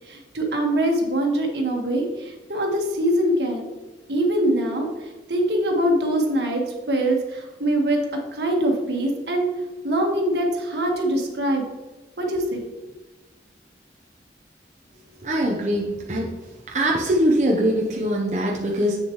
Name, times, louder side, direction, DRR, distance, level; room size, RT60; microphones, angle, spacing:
voice 1, 0.1-3.7 4.1-4.9 5.3-6.6 6.9-8.0 8.3-9.5 9.8-11.6 12.2-12.6, right 1 dB, 75° right, 1 dB, 1.5 m, -23 dB
voice 2, 15.2-16.3 16.7-19.0, equal, 40° right, -1 dB, 0.8 m, -22 dB
8.3 x 6.8 x 3.1 m, 1.2 s
head